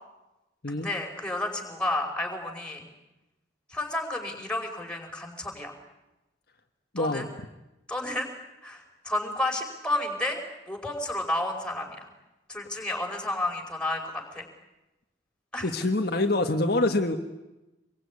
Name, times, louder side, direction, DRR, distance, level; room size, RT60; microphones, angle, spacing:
voice 1, 0.7-2.9 3.7-5.8 7.0-7.3 7.9-8.3 8.6-10.4 10.7-12.0 12.5-14.5 15.5-15.7, left 1 dB, 5° left, 1 dB, 5.2 m, -31 dB
voice 2, 6.9-7.3 15.6-17.2, left 2 dB, 55° left, 5 dB, 1.6 m, -25 dB
26.5 x 23.0 x 9.7 m, 0.99 s
head